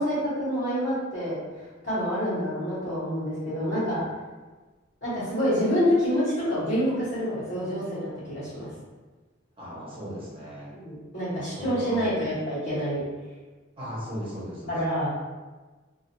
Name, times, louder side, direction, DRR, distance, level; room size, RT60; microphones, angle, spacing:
voice 1, 0.0-1.4 1.8-4.0 5.0-8.7 10.7-13.0 14.7-15.1, equal, 55° left, -13 dB, 1.2 m, -27 dB
voice 2, 9.6-10.7 11.4-12.4 13.8-14.8, equal, 30° right, -7 dB, 0.9 m, -37 dB
2.5 x 2.4 x 2.6 m, 1.3 s
head